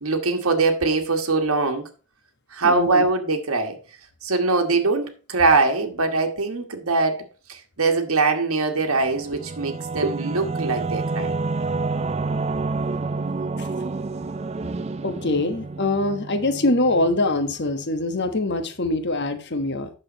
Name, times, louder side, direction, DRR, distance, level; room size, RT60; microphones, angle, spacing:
voice 1, 0.0-1.9 2.5-3.8 4.2-11.3, right 3 dB, 75° right, 1.3 m, -22 dB
voice 2, 2.6-3.1 13.6-13.7 15.0-19.9, left 2 dB, 50° left, 1.2 m, -23 dB
Singing / Musical instrument, 8.8-18.0, right 3 dB, 30° right, 0.4 m, -29 dB
8.7 x 6.6 x 4.1 m
head